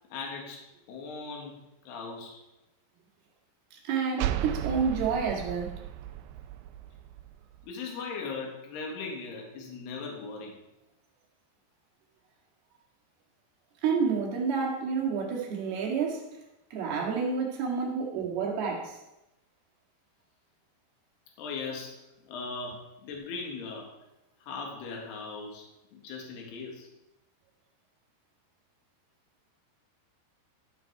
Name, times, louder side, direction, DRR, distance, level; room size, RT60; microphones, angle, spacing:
voice 1, 0.1-0.6 0.9-1.6 1.9-2.4 7.6-10.6 17.7-17.9 21.4-22.0 22.3-23.9 24.4-25.6 25.9-26.9, left 4 dB, 70° left, 3.7 m, -38 dB
voice 2, 3.7-5.8 13.8-16.3 16.7-19.0, right 5 dB, 65° right, 3.6 m, -29 dB
reverbed impact, 4.2-7.7, right 12 dB, 80° right, 2.3 m, -35 dB
15.0 x 5.9 x 4.6 m
omnidirectional pair, 5.0 m